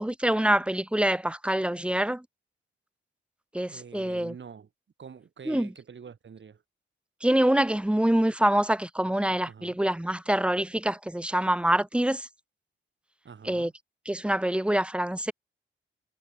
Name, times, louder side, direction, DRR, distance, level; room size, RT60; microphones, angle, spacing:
voice 1, 0.0-2.2 3.5-4.3 5.5-5.7 7.2-12.3 13.5-13.7 14.1-15.3, right 1 dB, 5° right, 0.7 m, -25 dB
voice 2, 3.7-4.7 5.0-6.6 9.5-9.8 13.2-13.7, right 6 dB, 60° right, 7.1 m, -46 dB
cardioid pair, 55°, 21 cm